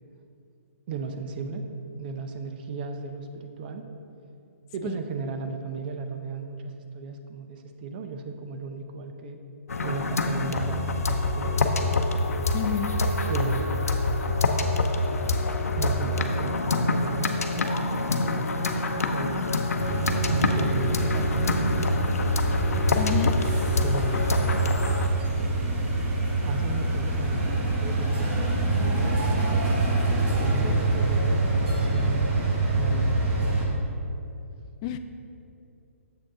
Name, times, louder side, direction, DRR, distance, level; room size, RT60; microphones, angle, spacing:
voice 1, 0.9-1.7 2.0-3.8 4.7-9.4 9.8-11.9 13.3-13.9 15.8-17.4 18.3-18.7 19.1-20.0 20.3-21.8 23.8-24.4 26.4-28.5 28.7-29.8 30.3-32.5 32.8-33.9, right 4 dB, 40° right, 6 dB, 0.6 m, -35 dB
sound 1, 9.7-25.1, left 2 dB, 85° left, 0.6 m, -26 dB
voice 2, 12.5-12.9 23.0-23.3 34.8-35.0, left 10 dB, 30° left, 10 dB, 0.3 m, -29 dB
sound 2, 19.8-33.7, right 2 dB, 20° right, 1.1 m, -25 dB
7.2 x 6.5 x 3.7 m, 2.7 s
hypercardioid pair, 145°, 8 cm